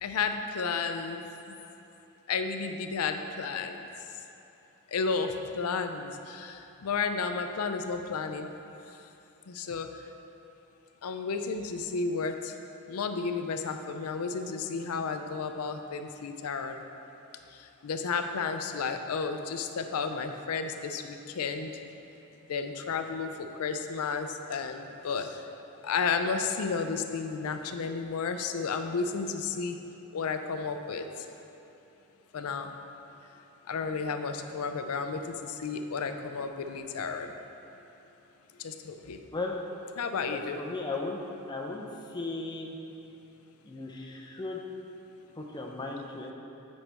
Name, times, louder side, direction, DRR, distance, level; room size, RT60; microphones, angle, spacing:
voice 1, 0.0-1.2 2.3-3.8 4.9-8.5 9.5-9.9 11.0-12.5 12.9-16.8 17.8-21.7 22.5-25.4 25.8-29.8 30.1-31.1 32.3-32.7 33.7-37.3 38.6-39.2 40.0-40.6, left 5 dB, 85° left, 7 dB, 0.5 m, -32 dB
voice 2, 40.3-41.2 41.5-41.8 42.1-42.7 43.7-44.6 45.4-46.3, left 3 dB, 20° left, 0 dB, 0.6 m, -36 dB
8.8 x 5.3 x 3.4 m, 2.9 s
head